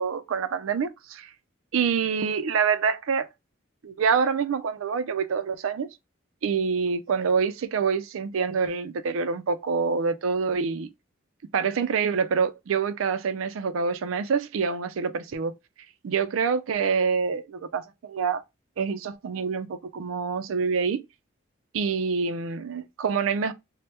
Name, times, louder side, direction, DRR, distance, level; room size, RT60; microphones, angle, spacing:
voice 1, 0.0-1.3 1.7-3.3 3.8-5.9 6.4-10.9 11.5-15.5 16.0-18.4 18.8-21.0 21.7-23.5, right 5 dB, 90° right, 0.4 m, -26 dB
2.9 x 2.1 x 3.2 m
head